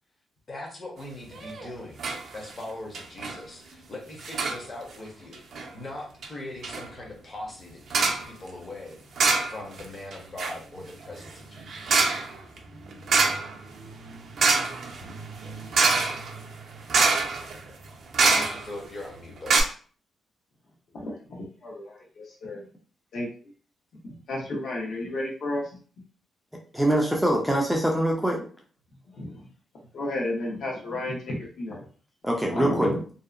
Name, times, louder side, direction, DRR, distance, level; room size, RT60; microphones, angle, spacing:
voice 1, 0.5-2.1 2.3-9.0 9.4-12.0 18.3-19.6, left 1 dB, 30° left, -1 dB, 0.8 m, -40 dB
sound 1, 1.3-1.7 2.0-2.2 2.5-2.6 2.9-3.4 4.2-4.6 5.3-5.7 6.2-6.3 6.6-6.9 7.9-8.3 9.2-9.8 10.1-18.9 19.2-19.3 19.5-19.6, right 4 dB, 60° right, 0.5 m, -26 dB
voice 2, 20.9-22.6 23.1-23.3 24.0-25.7 29.2-29.4 29.9-31.9 32.5-33.0, left 1 dB, 60° left, -2 dB, 0.9 m, -32 dB
voice 3, 26.7-28.4 32.2-33.0, right 1 dB, ahead, 0 dB, 0.4 m, -23 dB
2.7 x 2.0 x 2.4 m, 0.42 s
wide cardioid pair, 150°, 0 cm